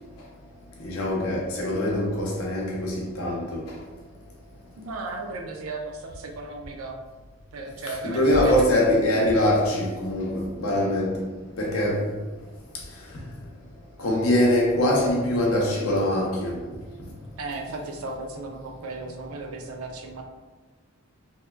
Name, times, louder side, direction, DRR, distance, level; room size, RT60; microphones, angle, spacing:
voice 1, 0.8-3.7 8.0-11.2 11.6-12.1 14.0-16.6, left 1 dB, 80° left, 0.6 m, -23 dB
voice 2, 4.8-7.0 7.5-8.7 10.6-10.9 17.4-20.2, right 3 dB, 85° right, 0.4 m, -35 dB
2.7 x 2.1 x 2.2 m
head